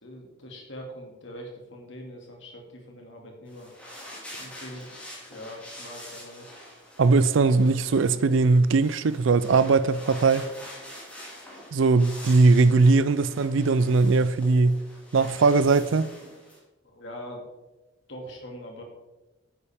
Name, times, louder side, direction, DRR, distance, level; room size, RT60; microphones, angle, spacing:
voice 1, 0.0-3.7 4.1-6.6 16.8-17.4 18.1-18.8, equal, 70° left, 2.3 m, -42 dB
sound 1, 3.5-16.6, equal, 5° left, 2.4 m, -45 dB
voice 2, 7.0-10.5 11.7-14.8 15.1-16.1, right 3 dB, 75° right, 0.4 m, -20 dB
10.0 x 8.6 x 3.6 m
head